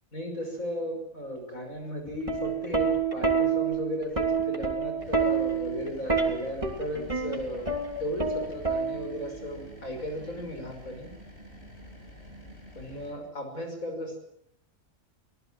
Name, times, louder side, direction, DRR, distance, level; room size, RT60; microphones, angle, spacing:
voice 1, 0.1-11.1 12.7-14.2, equal, 85° left, 4 dB, 6.3 m, -35 dB
Plucked string instrument, 2.1-9.3 10.4-10.7, right 5 dB, 25° right, 3.1 m, -28 dB
sound 1, 5.0-13.1, equal, 50° left, 7.1 m, -48 dB
24.5 x 18.0 x 7.6 m, 0.75 s
omnidirectional pair, 1.4 m